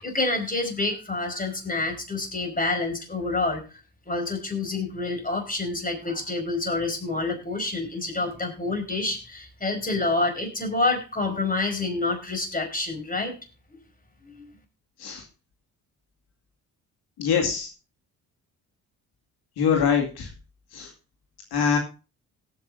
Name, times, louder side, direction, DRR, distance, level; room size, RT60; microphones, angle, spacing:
voice 1, 0.0-3.6 4.1-13.3 14.2-14.5, left 3 dB, 20° left, 4 dB, 5.3 m, -28 dB
voice 2, 17.2-17.7 19.6-20.3 20.7-20.9 21.5-21.8, left 7 dB, 80° left, 2 dB, 2.5 m, -23 dB
18.0 x 9.0 x 2.7 m, 0.32 s
supercardioid pair, 60°, 38 cm